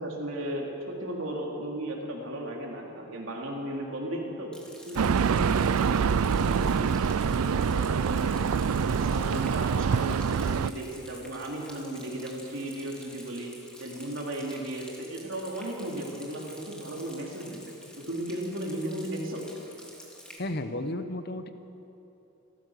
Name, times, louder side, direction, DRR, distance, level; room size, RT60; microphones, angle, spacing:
voice 1, 0.0-4.5 4.9-8.3 8.8-13.5 13.8-17.6 18.0-19.5, right 1 dB, 65° right, -1 dB, 3.6 m, -35 dB
Rain, 4.5-20.4, equal, 5° left, 2.8 m, -49 dB
sound 1, 5.0-10.7, right 6 dB, 90° right, 0.4 m, -25 dB
voice 2, 20.4-21.5, left 1 dB, 50° left, 9 dB, 1.0 m, -33 dB
28.0 x 14.5 x 6.6 m, 3.0 s
head